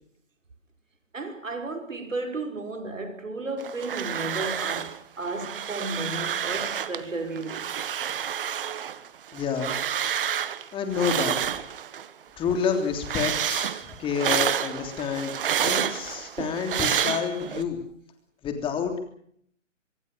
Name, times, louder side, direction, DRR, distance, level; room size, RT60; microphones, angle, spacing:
voice 1, 1.1-7.7, right 2 dB, 80° right, 5.5 m, -33 dB
sound 1, 3.6-5.0 5.2-7.0 7.4-12.1 12.4-17.6, right 9 dB, 45° right, 1.5 m, -29 dB
voice 2, 9.3-9.7 10.7-11.5 12.4-13.7 14.0-17.8 18.4-18.9, left 6 dB, 15° left, 3.2 m, -29 dB
25.5 x 22.5 x 6.8 m
figure-of-eight pair, 145°, 38 cm